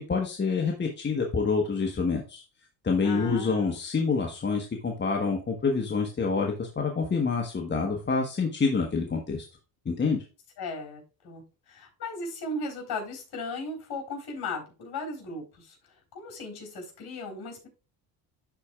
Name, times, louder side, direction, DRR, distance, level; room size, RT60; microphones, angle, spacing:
voice 1, 0.0-2.4 2.8-9.4 9.8-10.2, left 4 dB, 25° left, 2 dB, 1.1 m, -27 dB
voice 2, 3.0-3.7 10.6-15.8 16.1-17.7, left 2 dB, 50° left, 1 dB, 3.8 m, -37 dB
11.5 x 4.2 x 2.3 m, 0.32 s
supercardioid pair, 85°, 47 cm